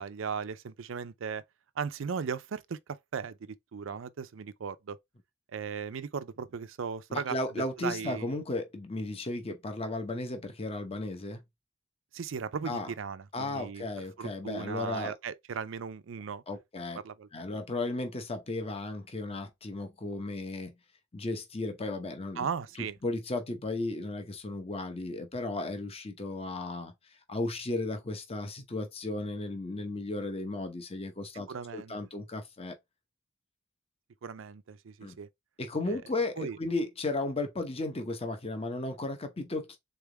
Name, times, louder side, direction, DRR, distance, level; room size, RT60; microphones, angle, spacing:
voice 1, 0.0-1.4 1.8-5.0 5.5-7.4 7.8-8.3 12.1-13.8 14.2-16.4 17.0-17.3 22.4-23.0 31.3-32.0 34.2-35.3 35.9-36.0 36.4-36.6, right 6 dB, 70° right, 0.5 m, -37 dB
voice 2, 7.1-11.4 12.6-12.9 13.3-15.1 16.5-17.0 17.3-20.7 21.1-22.5 22.8-26.9 27.3-31.5 31.7-32.7 35.0-35.2 35.6-39.8, left 2 dB, 30° left, 0.9 m, -35 dB
3.8 x 3.5 x 3.4 m
head